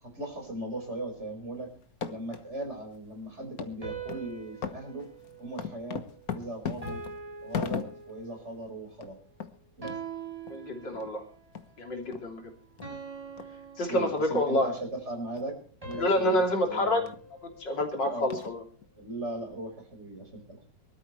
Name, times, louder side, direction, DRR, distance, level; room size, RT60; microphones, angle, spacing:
voice 1, 0.0-1.7 2.1-5.1 5.4-6.0 6.3-7.0 7.4-9.2 9.8-10.0 13.9-15.6 15.8-17.1 18.0-18.3 19.0-20.6, right 2 dB, 35° right, 3 dB, 5.2 m, -38 dB
sound 1, 1.8-2.4 2.9-3.0 3.6-3.7 4.1-4.3 4.6-8.2 8.6-8.7 8.9-9.1 9.4-9.5 9.9-10.0 10.5-10.6 11.0-11.1 11.5-11.7 12.1-12.2 12.8-12.9 13.4-13.5 14.2-14.4 14.8-14.9 15.4-15.5 15.9-16.0 16.5-16.6 17.1-17.2 17.8-17.9 18.3-18.9, left 7 dB, 55° left, 1.7 m, -38 dB
sound 2, 3.8-6.3 6.8-8.6 9.8-11.3 12.8-14.7 15.8-18.2, right 4 dB, 20° right, 7.7 m, -44 dB
voice 2, 10.5-11.2 11.8-12.5 13.8-14.7 16.0-17.0 17.4-18.6, left 1 dB, 75° left, 2 dB, 4.0 m, -28 dB
24.0 x 13.0 x 3.2 m, 0.40 s
omnidirectional pair, 1.9 m